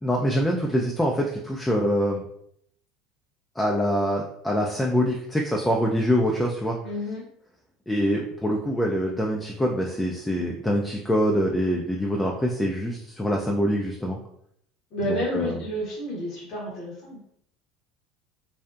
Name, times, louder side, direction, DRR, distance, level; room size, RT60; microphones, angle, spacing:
voice 1, 0.0-2.2 3.6-6.8 7.9-14.2 15.1-15.5, equal, 10° left, -1 dB, 0.4 m, -24 dB
voice 2, 6.8-7.2 14.9-17.2, equal, 45° left, -6 dB, 0.9 m, -30 dB
2.7 x 2.0 x 2.4 m, 0.70 s
hypercardioid pair, 70°, 0 cm